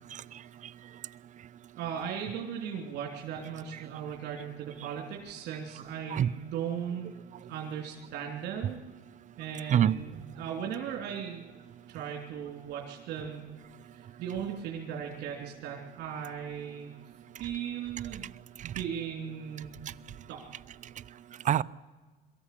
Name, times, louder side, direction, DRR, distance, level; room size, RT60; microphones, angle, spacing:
voice 1, 0.1-0.7 3.7-3.8 6.1-6.3 9.7-10.0 18.0-18.2 18.6-18.7 21.4-21.6, right 10 dB, 45° right, 18 dB, 0.6 m, -27 dB
voice 2, 1.7-7.1 7.5-8.8 9.4-11.4 11.9-13.5 13.9-16.9 17.4-18.3 18.6-19.7 20.3-20.4, right 8 dB, 80° right, 0 dB, 3.1 m, -37 dB
22.5 x 14.0 x 8.4 m, 1.3 s
cardioid pair, 110°, 17 cm